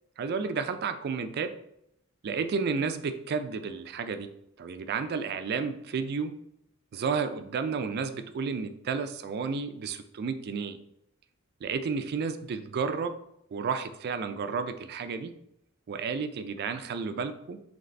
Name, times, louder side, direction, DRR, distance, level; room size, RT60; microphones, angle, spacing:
voice 1, 0.2-1.5 2.2-4.3 4.6-6.3 6.9-10.8 11.6-13.1 13.5-15.3 15.9-17.6, right 5 dB, 50° right, 9 dB, 0.3 m, -32 dB
3.9 x 3.2 x 3.3 m, 0.77 s
head